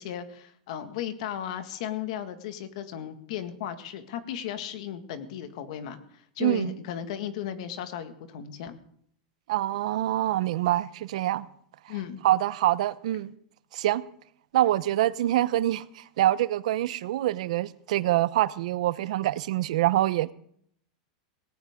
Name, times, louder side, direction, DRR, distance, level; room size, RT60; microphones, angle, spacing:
voice 1, 0.0-8.8 11.9-12.2, left 10 dB, 60° left, 1.9 m, -35 dB
voice 2, 6.4-6.7 9.5-11.5 12.2-13.3 13.7-14.0 14.5-20.3, right 14 dB, 65° right, 0.7 m, -25 dB
18.0 x 17.5 x 3.7 m
supercardioid pair, 160°, 4 cm